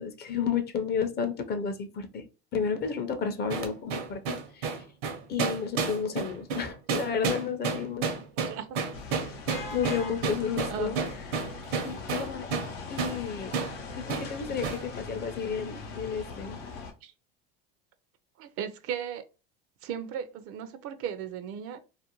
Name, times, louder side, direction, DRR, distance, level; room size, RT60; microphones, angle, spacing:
voice 1, 0.0-2.3 2.5-4.9 5.3-8.1 9.7-11.2 11.5-12.5 12.9-13.5 14.0-16.6, left 6 dB, 35° left, 0.5 m, -32 dB
sound 1, 3.5-12.7 13.0-13.2 13.5-13.7 14.1-14.3 14.6-14.8, right 5 dB, 80° right, 0.8 m, -30 dB
voice 2, 8.5-8.8 10.7-11.2 17.0-17.1 18.4-19.2 19.8-21.8, right 8 dB, 55° right, 0.4 m, -36 dB
sound 2, 8.9-16.9, left 4 dB, 90° left, 0.6 m, -40 dB
2.5 x 2.1 x 2.9 m
supercardioid pair, 100°, 29 cm